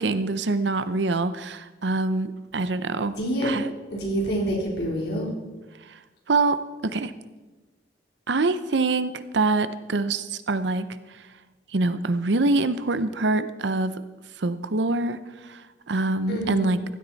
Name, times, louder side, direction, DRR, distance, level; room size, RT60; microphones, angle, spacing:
voice 1, 0.0-3.2 3.4-3.7 5.9-6.0 6.3-7.1 8.3-10.9 11.7-13.9 14.4-15.6 15.9-16.8, right 3 dB, 70° right, 13 dB, 0.7 m, -25 dB
voice 2, 3.2-3.5 3.9-5.3 16.3-16.7, right 1 dB, 60° left, -1 dB, 3.5 m, -27 dB
16.0 x 12.5 x 4.1 m, 1.2 s
head